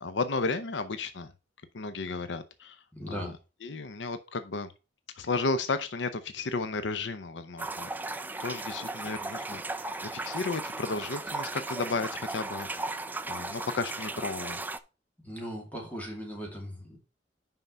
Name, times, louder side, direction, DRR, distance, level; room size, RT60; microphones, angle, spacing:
voice 1, 0.0-1.3 1.7-2.8 3.1-3.3 3.6-4.7 5.2-12.9 13.3-14.6, left 3 dB, 80° left, 11 dB, 0.7 m, -33 dB
voice 2, 2.9-3.3 15.2-17.0, equal, 10° left, 0 dB, 2.4 m, -38 dB
sound 1, 7.6-14.8, right 2 dB, 10° right, 0.4 m, -36 dB
5.7 x 5.4 x 5.5 m, 0.31 s
head